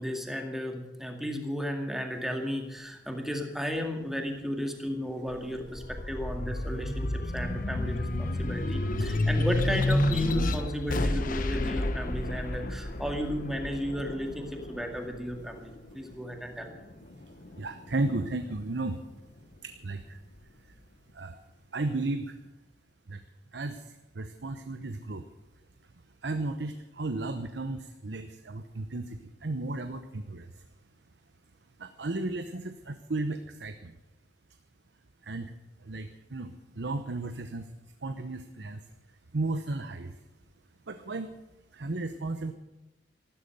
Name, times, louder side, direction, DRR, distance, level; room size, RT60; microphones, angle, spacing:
voice 1, 0.0-16.7, equal, ahead, 3 dB, 2.1 m, -34 dB
sound 1, 5.3-16.1 16.6-17.8, left 1 dB, 50° left, 1.1 m, -30 dB
voice 2, 17.6-19.0 19.6-20.2 20.6-20.7 21.1-21.4 21.7-22.4 23.1-23.2 23.5-25.3 26.2-30.6 31.8-34.0 35.2-35.5 35.8-37.7 38.0-38.8 39.3-40.2 40.9-41.4 41.7-42.5, right 2 dB, 75° right, 8 dB, 0.9 m, -34 dB
14.5 x 12.5 x 6.6 m, 1.0 s
head